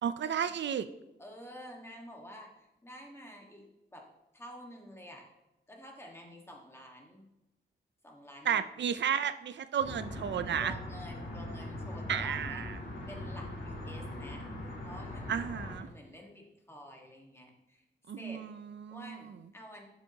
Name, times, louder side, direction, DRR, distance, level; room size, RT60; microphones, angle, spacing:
voice 1, 0.0-0.9 8.4-10.7 12.1-12.8 15.3-15.9 18.1-19.3, right 8 dB, 75° right, 12 dB, 0.4 m, -33 dB
voice 2, 1.2-2.5 2.8-3.6 3.9-4.1 4.3-5.3 5.7-7.2 8.0-8.6 10.6-12.6 13.1-15.5 15.8-17.8 18.2-18.4 18.9-19.9, equal, 15° left, 0 dB, 1.5 m, -49 dB
sound 1, 9.8-15.7, left 1 dB, 85° left, 2.3 m, -41 dB
11.5 x 7.1 x 2.8 m, 0.95 s
wide cardioid pair, 160°, 19 cm